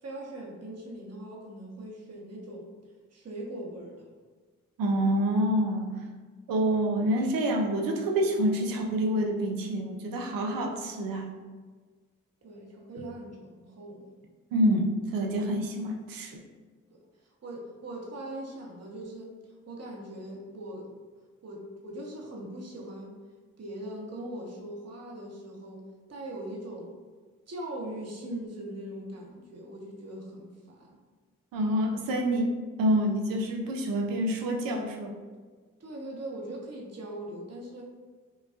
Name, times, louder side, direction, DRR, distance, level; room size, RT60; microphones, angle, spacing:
voice 1, 0.0-2.7 3.1-4.1 12.4-14.1 16.9-17.0 17.4-19.4 19.7-21.0 21.4-23.2 23.6-26.9 27.5-31.0 35.8-37.9, right 1 dB, 50° right, -1 dB, 1.0 m, -40 dB
voice 2, 4.8-6.0 6.5-11.3 14.5-16.4 31.5-35.2, equal, 90° right, 2 dB, 0.6 m, -27 dB
5.3 x 2.3 x 2.4 m, 1.4 s
supercardioid pair, 45°, 33 cm